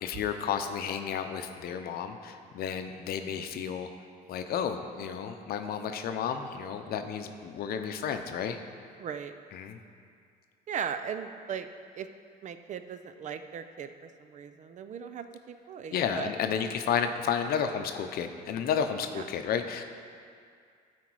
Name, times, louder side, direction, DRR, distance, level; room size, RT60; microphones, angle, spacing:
voice 1, 0.0-3.9 4.3-8.6 9.5-9.8 15.9-19.8, left 7 dB, 65° left, 7 dB, 0.7 m, -32 dB
voice 2, 9.0-9.3 10.7-11.7 11.9-12.1 12.4-16.3 19.0-19.3, right 7 dB, 45° right, 9 dB, 0.5 m, -38 dB
12.5 x 4.4 x 4.7 m, 2.2 s
cardioid pair, 110°, 17 cm